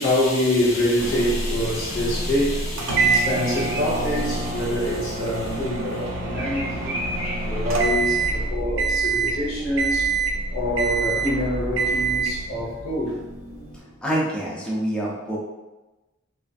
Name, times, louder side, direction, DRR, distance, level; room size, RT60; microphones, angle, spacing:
voice 1, 0.0-6.9 7.5-10.1 10.5-13.2, left 1 dB, 85° left, -6 dB, 0.9 m, -25 dB
Bird vocalization bird call bird song, 0.5-8.5, equal, 10° right, 0.7 m, -37 dB
sound 1, 1.0-14.0, equal, 40° left, 1.2 m, -33 dB
sound 2, 2.8-8.4 8.8-9.4 9.8-10.4 10.8-11.4 11.8-12.4, right 4 dB, 75° right, 0.4 m, -25 dB
voice 2, 13.7-15.4, right 1 dB, 5° left, -5 dB, 0.3 m, -26 dB
2.4 x 2.4 x 2.3 m, 1.1 s
head